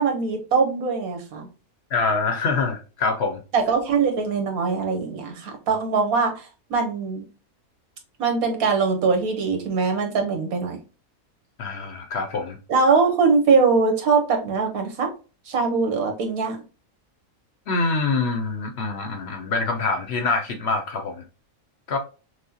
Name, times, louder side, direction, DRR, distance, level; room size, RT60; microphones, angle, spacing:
voice 1, 0.0-1.5 3.5-7.2 8.2-10.8 12.7-15.1 15.5-16.6, right 4 dB, 80° right, 4 dB, 1.5 m, -22 dB
voice 2, 1.9-3.4 11.6-12.6 17.7-21.2 21.9-22.0, left 4 dB, 60° left, 6 dB, 0.7 m, -25 dB
6.0 x 2.0 x 2.7 m, 0.34 s
omnidirectional pair, 1.5 m